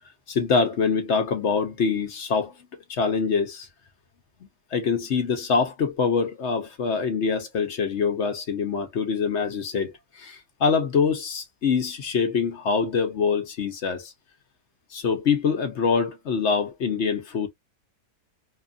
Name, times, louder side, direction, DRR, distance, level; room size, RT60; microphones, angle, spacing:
voice 1, 0.3-2.5 2.9-3.7 4.7-14.1 14.9-17.5, left 5 dB, 55° left, 0.8 m, -24 dB
2.8 x 2.4 x 2.4 m
omnidirectional pair, 1.7 m